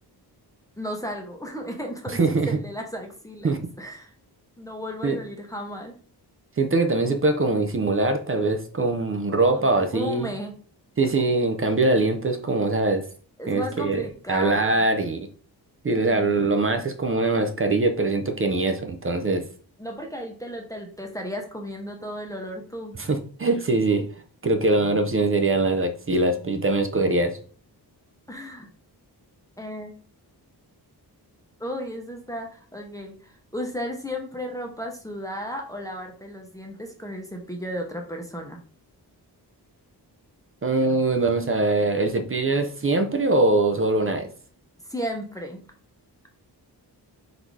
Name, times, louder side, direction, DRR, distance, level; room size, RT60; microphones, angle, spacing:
voice 1, 0.8-3.5 3.8-4.1 4.6-6.0 9.5-10.6 13.4-14.9 16.0-16.5 19.8-23.0 28.3-28.7 29.6-29.9 31.6-38.6 44.9-45.6, equal, 10° left, 1 dB, 0.7 m, -34 dB
voice 2, 2.1-2.6 3.4-3.6 5.0-5.2 6.6-10.3 11.0-13.1 13.5-14.0 14.3-15.3 15.8-19.5 22.9-27.4 40.6-44.3, right 2 dB, 35° right, 6 dB, 0.5 m, -22 dB
4.0 x 2.7 x 4.6 m, 0.42 s
wide cardioid pair, 165°, 40 cm